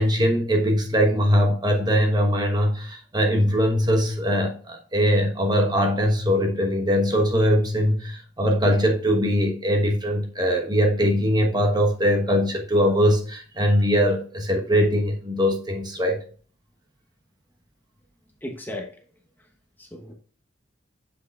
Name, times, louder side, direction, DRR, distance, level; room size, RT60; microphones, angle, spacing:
voice 1, 0.0-16.2, equal, 25° right, 3 dB, 1.1 m, -21 dB
voice 2, 18.4-18.9 19.8-20.1, left 1 dB, 10° left, 2 dB, 1.0 m, -35 dB
7.7 x 6.3 x 2.4 m, 0.40 s
head